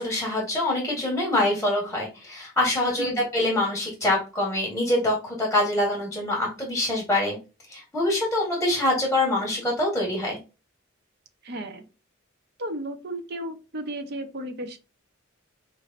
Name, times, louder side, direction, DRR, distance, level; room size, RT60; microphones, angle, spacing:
voice 1, 0.0-7.4 7.7-10.4, left 1 dB, 5° left, -3 dB, 1.8 m, -25 dB
voice 2, 11.4-11.9 12.6-14.8, right 1 dB, 50° right, 7 dB, 0.9 m, -34 dB
5.4 x 3.3 x 2.6 m, 0.30 s
head